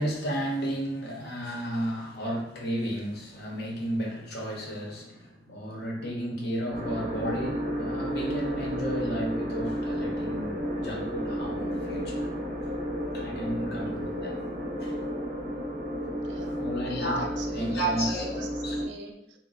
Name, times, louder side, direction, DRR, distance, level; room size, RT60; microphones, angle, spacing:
voice 1, 0.0-12.3 12.7-12.8 13.1-14.4 14.8-15.0 16.6-18.7, right 1 dB, 60° left, -1 dB, 0.9 m, -33 dB
sound 1, 6.7-18.8, equal, 45° right, 0.9 m, -32 dB
voice 2, 16.2-16.7 17.1-19.4, right 3 dB, 85° right, 4 dB, 0.5 m, -42 dB
3.7 x 2.1 x 3.9 m, 0.78 s
head